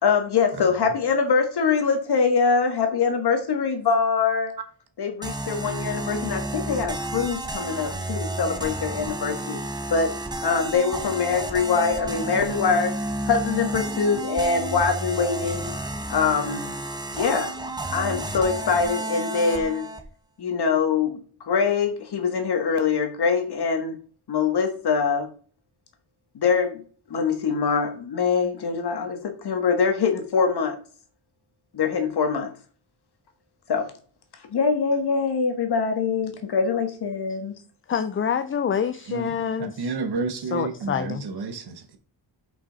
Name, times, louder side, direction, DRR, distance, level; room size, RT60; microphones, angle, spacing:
voice 1, 0.0-4.5 5.0-9.6 9.9-10.1 10.4-12.9 13.3-15.7 16.1-16.7 17.1-17.5 17.9-19.9 20.4-21.2 21.5-24.0 24.3-25.3 26.3-26.8 27.1-30.8 31.7-32.5 33.7-33.9 34.5-37.5, left 5 dB, 60° left, 1.6 m, -23 dB
sound 1, 5.2-20.0, right 1 dB, 10° right, 0.8 m, -31 dB
voice 2, 37.9-39.9 40.4-41.2, left 7 dB, 30° left, 0.4 m, -27 dB
voice 3, 39.6-42.0, right 4 dB, 60° right, 1.1 m, -31 dB
5.9 x 5.4 x 4.0 m
wide cardioid pair, 165°, 44 cm